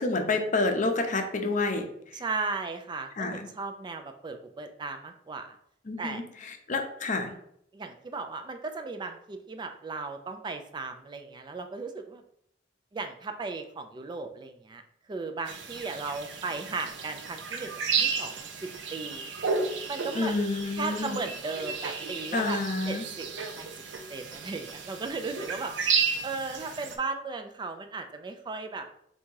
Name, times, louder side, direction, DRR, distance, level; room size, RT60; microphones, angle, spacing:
voice 1, 0.0-1.9 2.1-2.2 3.2-3.5 5.8-7.3 20.1-21.2 22.3-23.1, left 3 dB, 45° left, 5 dB, 0.6 m, -29 dB
voice 2, 2.1-5.6 6.0-6.2 7.7-12.2 12.9-14.8 15.1-18.5 18.9-19.3 19.9-20.3 20.8-22.6 22.9-23.3 23.6-23.7 24.1-25.7 26.2-28.9, right 4 dB, 25° right, 6 dB, 0.3 m, -36 dB
sound 1, 15.5-26.9, right 5 dB, 90° right, 0.6 m, -33 dB
3.5 x 2.7 x 4.5 m, 0.72 s
head